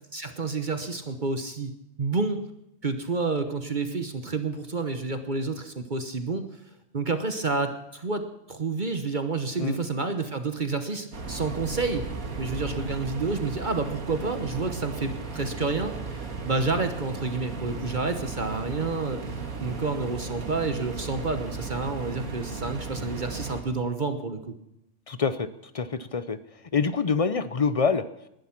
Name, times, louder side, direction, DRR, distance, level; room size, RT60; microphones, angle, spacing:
voice 1, 0.1-1.7 2.0-2.4 2.8-6.5 6.9-12.0 12.4-24.5, right 3 dB, 40° right, 8 dB, 1.1 m, -29 dB
sound 1, 11.1-23.6, right 4 dB, 85° right, 2.3 m, -35 dB
voice 2, 25.1-25.5 25.7-26.4 26.7-28.0, left 5 dB, 45° left, 13 dB, 0.4 m, -25 dB
19.5 x 11.5 x 5.9 m, 0.83 s
omnidirectional pair, 1.4 m